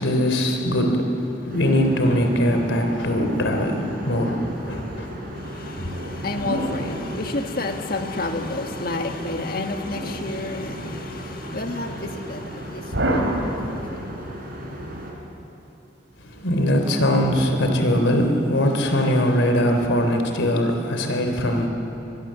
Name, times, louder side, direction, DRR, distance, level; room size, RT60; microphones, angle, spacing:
voice 1, 0.0-5.1 16.2-21.7, equal, 90° left, 4 dB, 3.4 m, -21 dB
sound 1, 1.5-15.1, equal, 50° right, 4.5 m, -36 dB
voice 2, 5.4-14.0, left 2 dB, 50° left, 4 dB, 1.7 m, -31 dB
sound 2, 5.9-8.2 9.9-11.1 12.9-14.2 17.2-18.7, right 1 dB, 80° right, 3.4 m, -30 dB
23.5 x 20.5 x 7.6 m, 2.9 s
head